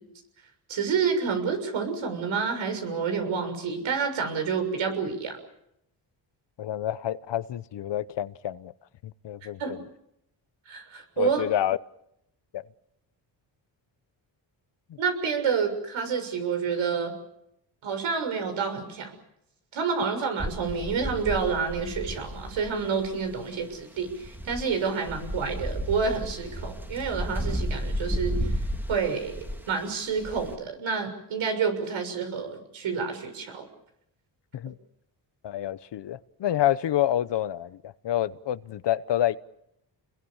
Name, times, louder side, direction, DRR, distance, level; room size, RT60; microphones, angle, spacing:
voice 1, 0.7-5.3 9.6-9.8 10.6-11.4 15.0-17.1 17.8-19.1 19.7-28.5 28.9-33.6, right 5 dB, 85° right, 6 dB, 6.8 m, -29 dB
voice 2, 6.6-8.7 9.0-9.8 11.2-11.8 12.5-12.6 34.5-34.7 35.4-39.4, left 12 dB, 65° left, 16 dB, 1.0 m, -28 dB
sound 1, 20.4-30.6, equal, 5° right, 2.1 m, -33 dB
29.5 x 22.0 x 7.3 m, 0.80 s
cardioid pair, 105°, 46 cm